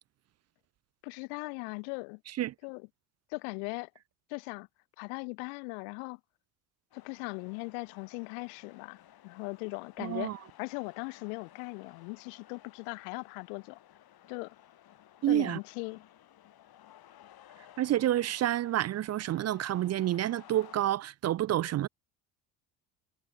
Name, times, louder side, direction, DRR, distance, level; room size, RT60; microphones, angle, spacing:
voice 1, 1.0-2.2 2.6-2.9 3.3-3.9 4.3-4.7 5.0-6.2 6.9-13.8 14.3-14.5 15.3-16.0, left 40 dB or more, 80° left, 1.6 m, -39 dB
sound 1, 6.9-20.9, left 12 dB, 55° left, 2.6 m, -57 dB
voice 2, 10.0-10.4 15.2-15.6 17.8-21.9, right 13 dB, 40° right, 0.4 m, -29 dB
hypercardioid pair, 70°, 44 cm